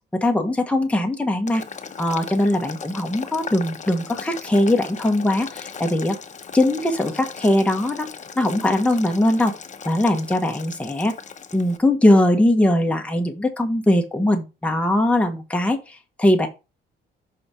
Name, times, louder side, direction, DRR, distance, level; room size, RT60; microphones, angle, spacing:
voice 1, 0.1-1.6 2.0-6.2 6.5-8.1 8.4-9.5 9.8-11.1 11.5-16.5, left 1 dB, 5° left, 4 dB, 1.3 m, -20 dB
Boiling, 1.5-11.8, left 6 dB, 40° left, 0.9 m, -38 dB
5.7 x 4.2 x 4.8 m, 0.28 s
cardioid pair, 90°, 20 cm